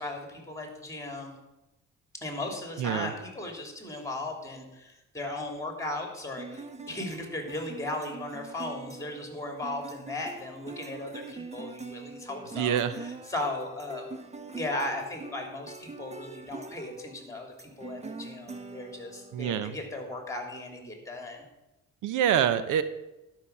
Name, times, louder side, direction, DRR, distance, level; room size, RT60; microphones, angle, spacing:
voice 1, 0.0-1.3 2.2-14.1 14.5-21.4, left 2 dB, 10° left, 3 dB, 3.2 m, -37 dB
voice 2, 2.8-3.1 12.5-13.0 19.3-19.7 22.0-22.8, right 9 dB, 85° right, 13 dB, 0.8 m, -26 dB
sound 1, 6.4-19.6, right 3 dB, 20° right, 0.9 m, -44 dB
12.0 x 6.0 x 7.0 m, 0.95 s
cardioid pair, 90°, 30 cm